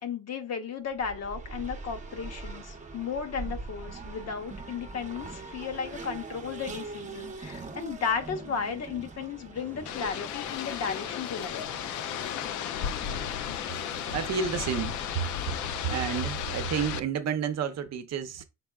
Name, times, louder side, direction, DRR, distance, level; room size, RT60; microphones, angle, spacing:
voice 1, 0.0-11.7, left 6 dB, 60° left, 0.9 m, -34 dB
Race car auto racing, 0.9-10.6, right 3 dB, 25° right, 0.8 m, -42 dB
sound 1, 9.5-15.9, equal, 5° left, 0.8 m, -48 dB
sound 2, 9.9-17.0, left 9 dB, 75° left, 0.5 m, -34 dB
voice 2, 14.1-15.5 15.8-18.4, right 7 dB, 60° right, 0.7 m, -30 dB
5.4 x 3.5 x 2.3 m
cardioid pair, 90°, 30 cm